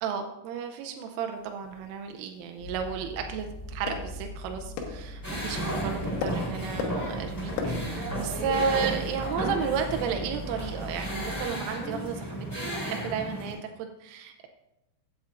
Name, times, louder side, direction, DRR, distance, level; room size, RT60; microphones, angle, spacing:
voice 1, 0.0-14.5, right 6 dB, 90° right, 5 dB, 3.3 m, -33 dB
sound 1, 1.3-10.2, left 5 dB, 80° left, 3.7 m, -41 dB
sound 2, 2.6-11.4, equal, 60° left, 2.3 m, -41 dB
sound 3, 5.2-13.5, right 1 dB, 5° left, 2.3 m, -33 dB
15.5 x 8.7 x 2.5 m, 0.92 s
omnidirectional pair, 5.6 m